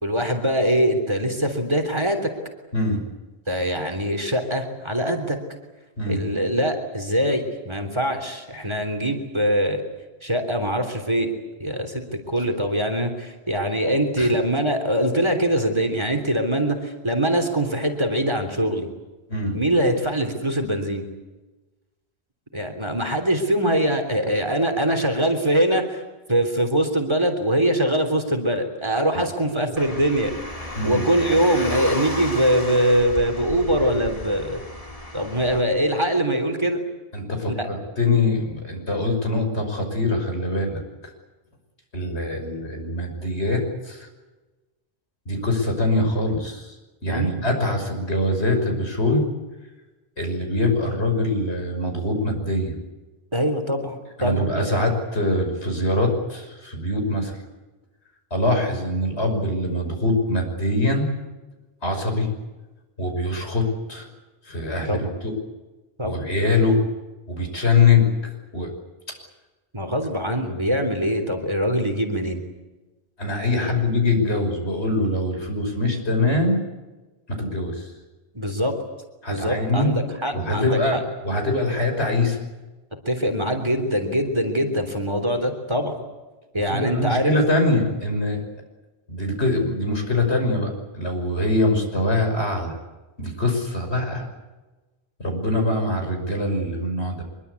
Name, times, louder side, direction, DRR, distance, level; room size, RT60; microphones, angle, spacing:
voice 1, 0.0-2.3 3.5-5.4 6.1-9.8 10.2-11.3 11.6-18.9 19.5-21.0 22.5-26.0 26.3-30.3 30.8-34.6 35.1-36.8 37.5-37.7 47.1-47.4 53.3-54.6 64.9-65.1 66.0-66.3 69.7-72.4 73.7-73.8 78.3-78.7 79.3-81.0 83.0-86.0 86.5-87.3, equal, 25° right, 5 dB, 3.5 m, -23 dB
voice 2, 2.7-3.0 6.0-6.2 14.2-14.3 19.3-19.6 30.7-31.1 37.1-41.1 41.9-44.1 45.3-46.7 47.0-49.2 50.2-52.8 54.2-57.4 58.3-61.1 61.8-62.3 63.0-64.1 64.4-65.3 66.0-66.8 67.3-68.1 68.5-68.7 73.2-76.6 77.3-77.9 79.2-79.9 80.3-81.0 81.2-82.4 86.6-88.4 89.1-92.7 93.2-94.3 95.2-97.2, left 2 dB, 80° left, 4 dB, 6.2 m, -23 dB
Car, 29.8-35.6, left 1 dB, 35° left, 3.8 m, -34 dB
24.5 x 22.5 x 8.4 m, 1.1 s
omnidirectional pair, 1.1 m